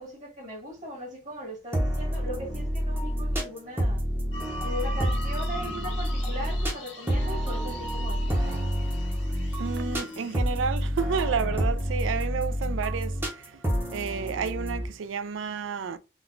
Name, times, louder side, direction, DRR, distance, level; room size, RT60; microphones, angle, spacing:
voice 1, 0.0-4.0 4.6-8.7, equal, 40° right, 1.6 m, -39 dB
sound 1, 1.7-14.9, equal, 10° right, 0.7 m, -28 dB
sound 2, 4.3-10.4, left 1 dB, 80° left, 1.5 m, -40 dB
voice 2, 9.6-13.6 13.9-16.0, right 6 dB, 80° right, 0.4 m, -31 dB
3.9 x 2.2 x 2.4 m
head